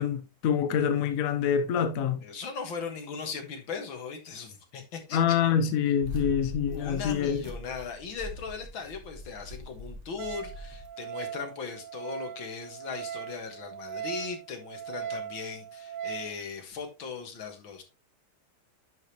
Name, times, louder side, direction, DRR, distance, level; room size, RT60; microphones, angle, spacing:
voice 1, 0.0-2.2 5.1-7.4, left 8 dB, 55° left, 1.1 m, -26 dB
voice 2, 2.2-5.2 6.7-17.8, left 5 dB, 80° left, 2.3 m, -38 dB
sound 1, 6.0-10.9, left 1 dB, 40° right, 1.8 m, -41 dB
Wind instrument woodwind instrument, 10.2-16.3, right 9 dB, 70° right, 1.3 m, -39 dB
10.5 x 5.2 x 3.0 m
omnidirectional pair, 2.1 m